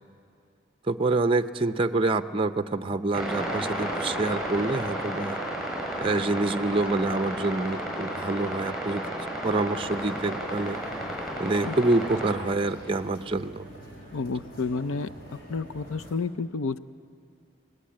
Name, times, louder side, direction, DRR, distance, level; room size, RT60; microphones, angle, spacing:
voice 1, 0.9-5.4 6.0-9.0 9.4-10.8 11.4-13.7, right 2 dB, 25° right, 9 dB, 0.5 m, -26 dB
sound 1, 3.1-12.3, right 1 dB, ahead, 6.3 m, -32 dB
sound 2, 9.7-16.1, equal, 45° left, 6.5 m, -46 dB
voice 2, 14.1-15.1 15.5-16.8, left 4 dB, 80° left, 12 dB, 0.6 m, -30 dB
28.5 x 19.5 x 8.7 m, 2.5 s
head